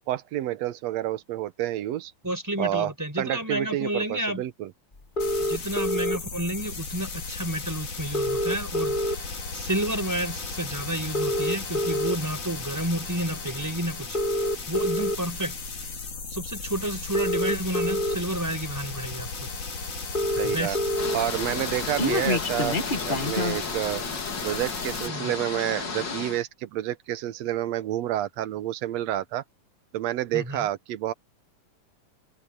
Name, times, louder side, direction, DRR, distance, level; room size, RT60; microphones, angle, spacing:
voice 1, 0.1-2.1 2.6-2.9 3.2-4.7 20.4-20.8 21.1-22.8 23.0-24.0 24.4-29.4 29.9-31.1, right 13 dB, 70° right, 1.8 m, -29 dB
voice 2, 2.2-4.4 5.4-14.2 14.7-15.6 16.3-19.3 20.4-20.8 22.1-22.2 25.1-25.3 30.3-30.7, right 1 dB, 5° right, 4.5 m, -31 dB
sound 1, 5.2-25.1, left 4 dB, 75° left, 6.2 m, -36 dB
sound 2, 5.2-6.2 7.3-7.4 7.7-7.8 8.0-9.4 9.9-10.1 11.0-12.1 12.9-13.1 14.0-15.2 16.4-16.5 17.0-18.1 18.8-18.9 19.2-19.3 19.6-19.7 19.8-21.1 21.5-23.6, left 1 dB, 55° left, 0.5 m, -26 dB
sound 3, 21.0-26.4, left 4 dB, 35° left, 2.8 m, -33 dB
omnidirectional pair, 3.5 m